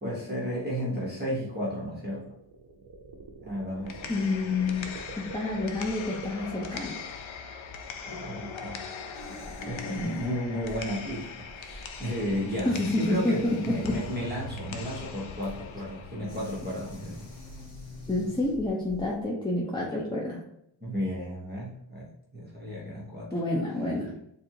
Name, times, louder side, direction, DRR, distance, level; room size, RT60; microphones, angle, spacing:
voice 1, 0.0-2.4 3.4-4.2 8.1-8.8 9.3-17.3 20.8-23.3, equal, 20° right, -6 dB, 1.0 m, -33 dB
sound 1, 1.9-7.0, right 3 dB, 45° right, 0.7 m, -45 dB
sound 2, 3.7-17.7, left 5 dB, 65° left, 0.6 m, -42 dB
voice 2, 4.1-4.8 5.2-7.0 12.7-14.0 18.1-20.4 23.3-24.1, left 2 dB, 10° left, -4 dB, 0.5 m, -28 dB
sound 3, 9.1-19.2, right 1 dB, 25° left, 1.3 m, -45 dB
3.7 x 2.6 x 4.4 m, 0.75 s
wide cardioid pair, 160°, 50 cm